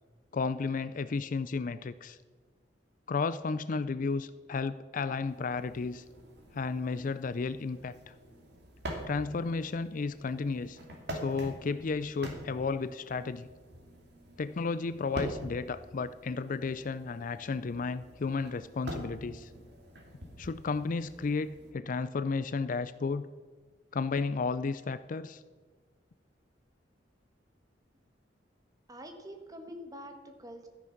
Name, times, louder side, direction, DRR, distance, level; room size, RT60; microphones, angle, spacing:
voice 1, 0.3-2.2 3.1-6.0 6.5-8.1 9.1-10.8 11.1-13.5 14.4-19.5 20.4-23.3 23.9-25.4, left 4 dB, 45° left, 14 dB, 0.4 m, -33 dB
sound 1, 5.1-21.7, right 1 dB, 65° right, 2.5 m, -45 dB
voice 2, 28.9-30.7, equal, 20° right, 5 dB, 1.5 m, -45 dB
13.5 x 10.0 x 5.9 m, 1.4 s
head